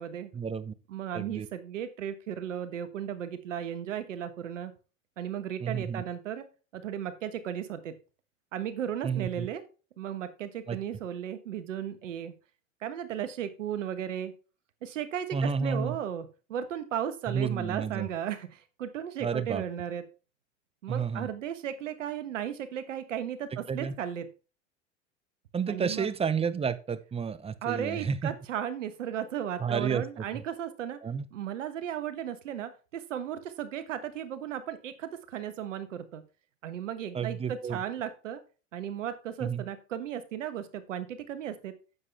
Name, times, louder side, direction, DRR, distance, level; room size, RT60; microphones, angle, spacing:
voice 1, 0.3-0.7 1.1-1.5 5.6-6.0 9.0-9.5 10.7-10.8 15.3-15.9 17.3-18.1 19.2-19.6 20.9-21.3 23.7-23.9 25.5-28.3 29.6-30.0 31.0-31.3 37.1-37.8 39.4-39.6, right 6 dB, 15° right, 15 dB, 0.7 m, -31 dB
voice 2, 0.9-4.7 5.2-6.5 6.7-7.9 8.5-9.6 10.0-12.3 12.8-14.3 14.8-20.0 20.8-24.3 25.7-26.1 27.6-31.0 31.3-36.2 36.6-38.4 38.7-41.7, right 9 dB, 75° right, 11 dB, 1.4 m, -35 dB
9.6 x 7.4 x 3.4 m, 0.34 s
hypercardioid pair, 90°, 38 cm